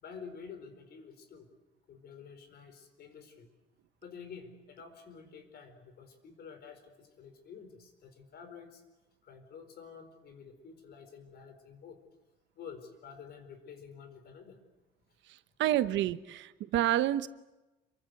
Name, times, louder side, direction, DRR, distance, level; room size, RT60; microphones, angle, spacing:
voice 1, 0.0-1.5 1.9-3.5 4.0-8.8 9.2-12.0 12.6-14.6, left 6 dB, 60° left, 9 dB, 4.5 m, -49 dB
voice 2, 15.6-17.3, right 13 dB, 80° right, 13 dB, 1.1 m, -28 dB
27.5 x 23.0 x 8.0 m, 1.0 s
cardioid pair, 145°, 19 cm